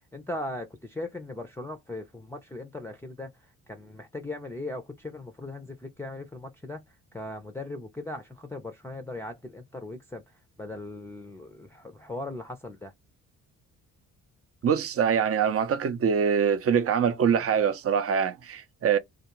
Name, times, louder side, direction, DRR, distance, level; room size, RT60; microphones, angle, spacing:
voice 1, 0.1-3.3 3.7-6.8 7.1-10.2 10.6-12.9, left 2 dB, 5° left, 0.5 m, -38 dB
voice 2, 14.6-19.0, right 7 dB, 40° right, 0.6 m, -24 dB
2.4 x 2.4 x 3.0 m
supercardioid pair, 65°, 34 cm